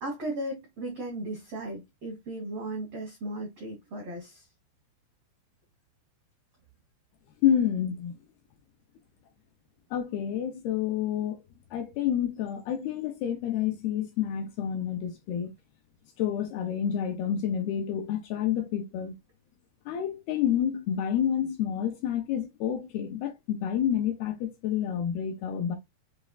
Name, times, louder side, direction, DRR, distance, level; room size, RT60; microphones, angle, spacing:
voice 1, 0.0-4.5, right 1 dB, 75° right, 1.3 m, -36 dB
voice 2, 7.4-8.2 9.9-11.4 11.7-15.5 16.2-19.1 19.9-25.8, left 9 dB, 80° left, 2.3 m, -29 dB
6.7 x 3.0 x 2.3 m
omnidirectional pair, 5.1 m